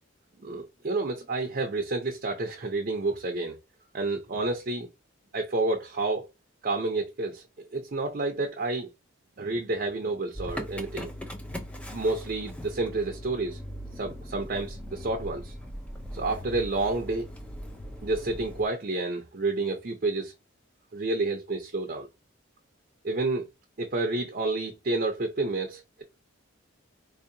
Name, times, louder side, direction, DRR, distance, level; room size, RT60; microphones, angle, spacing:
voice 1, 0.4-3.6 3.9-4.9 5.3-6.3 6.6-7.4 7.7-8.9 9.4-11.1 11.9-13.6 13.9-15.5 16.1-17.3 18.0-20.3 20.9-22.1 23.0-23.5 23.8-26.0, right 2 dB, 45° right, 0.6 m, -29 dB
Motor vehicle (road) / Engine starting, 10.3-18.7, equal, 5° left, 0.5 m, -40 dB
4.1 x 2.8 x 2.6 m
head